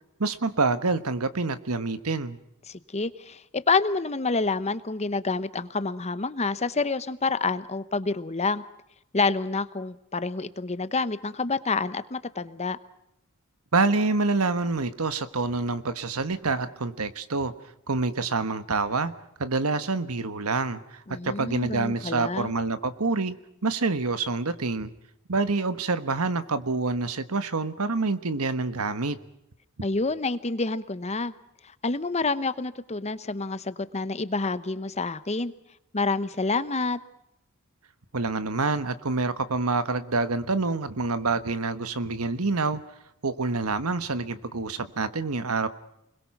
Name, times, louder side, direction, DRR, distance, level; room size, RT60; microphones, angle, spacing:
voice 1, 0.2-2.4 13.7-17.5 17.9-19.1 19.4-23.3 23.6-24.9 25.3-29.2 38.1-42.8 43.2-45.7, right 3 dB, 85° right, 12 dB, 1.4 m, -27 dB
voice 2, 2.7-8.6 9.1-12.8 21.1-22.5 29.8-31.3 31.8-35.5 35.9-37.0, left 3 dB, 30° left, 14 dB, 0.9 m, -28 dB
28.5 x 21.5 x 6.0 m, 0.82 s
head